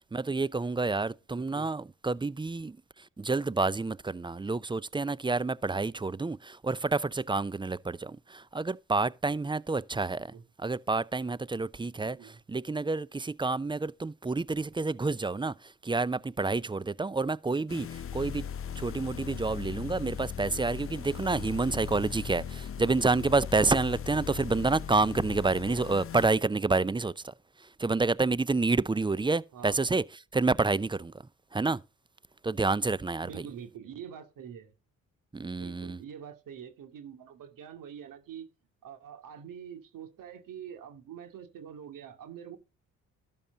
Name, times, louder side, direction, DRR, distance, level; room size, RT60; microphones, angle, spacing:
voice 1, 0.1-2.8 3.2-10.3 10.6-18.5 18.8-27.3 27.8-30.0 30.3-31.1 31.5-31.8 32.4-33.3 35.3-36.0, right 3 dB, 15° right, 0.5 m, -29 dB
voice 2, 1.3-1.7 10.1-10.4 12.0-12.4 29.5-29.9 33.2-34.7 35.5-38.5 38.8-42.6, right 8 dB, 75° right, 2.4 m, -45 dB
sound 1, 17.7-26.3, left 8 dB, 40° left, 0.7 m, -38 dB
12.0 x 7.2 x 3.9 m
supercardioid pair, 70°, 33 cm